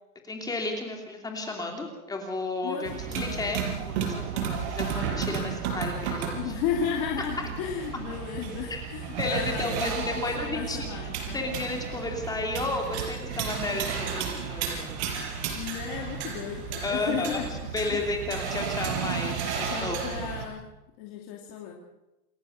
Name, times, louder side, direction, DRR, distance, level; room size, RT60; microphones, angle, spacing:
voice 1, 0.3-6.5 8.7-8.8 9.2-10.9 11.3-14.9 16.8-17.4 17.7-20.0, left 2 dB, 10° left, 2 dB, 2.9 m, -32 dB
voice 2, 2.6-3.5 6.3-11.4 15.5-17.6 17.9-18.0 19.7-20.7 21.0-21.7, left 8 dB, 35° left, 1 dB, 2.7 m, -34 dB
sound 1, 2.9-20.5, right 7 dB, 45° right, 5.4 m, -33 dB
28.5 x 14.0 x 6.6 m, 0.97 s
supercardioid pair, 160°, 45 cm